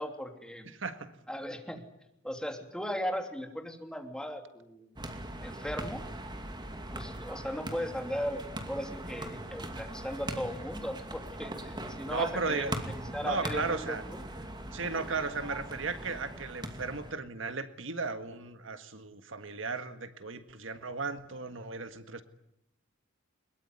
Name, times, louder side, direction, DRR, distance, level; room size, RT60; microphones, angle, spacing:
voice 1, 0.0-0.7 1.3-1.8 2.2-4.9 5.4-6.0 6.9-14.2, equal, 5° left, 4 dB, 3.0 m, -37 dB
voice 2, 0.7-1.1 12.1-12.8 13.2-14.0 14.7-22.2, right 4 dB, 70° right, 9 dB, 1.7 m, -35 dB
sound 1, 5.0-17.1, right 1 dB, 20° right, 2.5 m, -40 dB
22.5 x 22.0 x 9.7 m, 0.82 s
head